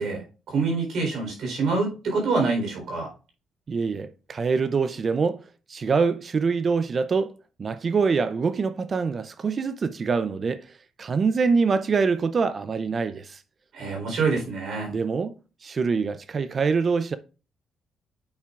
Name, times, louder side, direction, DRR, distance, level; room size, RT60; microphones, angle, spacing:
voice 1, 0.0-3.1 13.7-14.9, right 4 dB, 65° right, 3.9 m, -26 dB
voice 2, 3.7-5.4 5.7-7.3 7.6-10.7 11.0-13.4 14.9-15.3 15.6-17.2, right 5 dB, 40° right, 0.5 m, -24 dB
8.6 x 5.9 x 2.4 m
cardioid pair, 90°, 0 cm